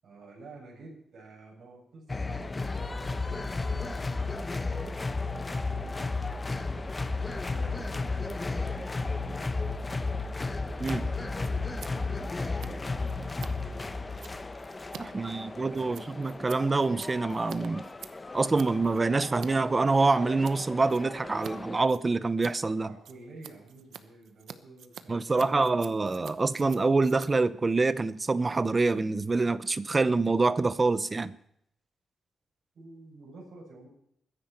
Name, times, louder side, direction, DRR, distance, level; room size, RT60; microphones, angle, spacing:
voice 1, 0.0-10.0 10.5-14.1 15.0-16.1 22.8-25.8 32.7-33.9, right 2 dB, 55° right, 7.4 m, -51 dB
sound 1, 2.1-21.9, left 3 dB, 20° left, 0.8 m, -34 dB
Scissors, 10.7-10.9 11.2-19.5 19.8-20.6 20.9-21.5 21.8-28.6, right 8 dB, 80° right, 0.9 m, -48 dB
voice 2, 15.0-17.9 18.3-22.9 25.1-31.3, right 3 dB, 25° right, 0.7 m, -26 dB
22.0 x 10.5 x 4.4 m
wide cardioid pair, 130°, 0 cm